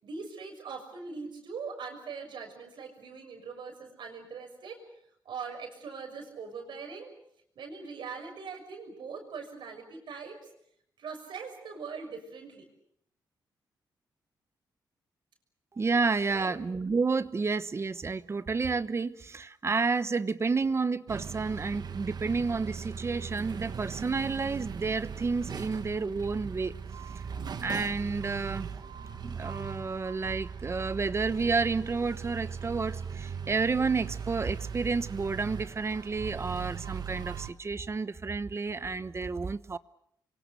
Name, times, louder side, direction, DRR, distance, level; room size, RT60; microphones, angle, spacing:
voice 1, 0.0-4.8 5.2-7.1 7.5-10.5 11.0-12.7 16.3-16.5, right 5 dB, 80° right, 6.6 m, -41 dB
voice 2, 15.8-26.7 27.6-28.7 29.2-39.8, right 4 dB, 35° right, 1.0 m, -30 dB
sound 1, 21.1-37.5, right 6 dB, 60° right, 1.5 m, -39 dB
28.0 x 24.0 x 6.8 m
cardioid pair, 95°, 8 cm